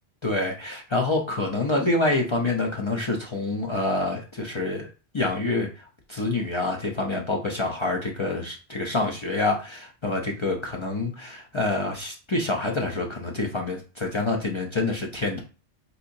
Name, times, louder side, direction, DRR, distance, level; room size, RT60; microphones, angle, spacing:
voice 1, 0.2-4.9 5.1-15.4, left 2 dB, 45° left, 0 dB, 0.3 m, -27 dB
4.2 x 2.7 x 2.6 m, 0.34 s
omnidirectional pair, 1.2 m